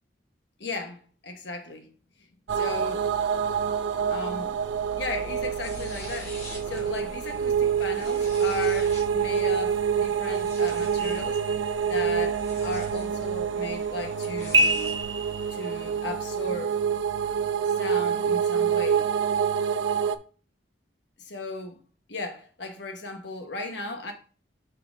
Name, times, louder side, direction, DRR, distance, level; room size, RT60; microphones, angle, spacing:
voice 1, 0.6-1.9 2.5-3.1 4.1-4.7 5.0-11.4 11.9-14.9 15.5-16.8 17.8-19.1 21.2-21.8 22.1-24.1, left 2 dB, 70° left, 1.2 m, -36 dB
sound 1, 2.5-20.2, right 7 dB, 90° right, 0.5 m, -27 dB
sound 2, 5.3-15.0, left 1 dB, 35° left, 2.1 m, -46 dB
sound 3, 11.0-12.2 14.5-16.0, right 2 dB, 25° right, 0.4 m, -27 dB
5.7 x 5.3 x 3.7 m
head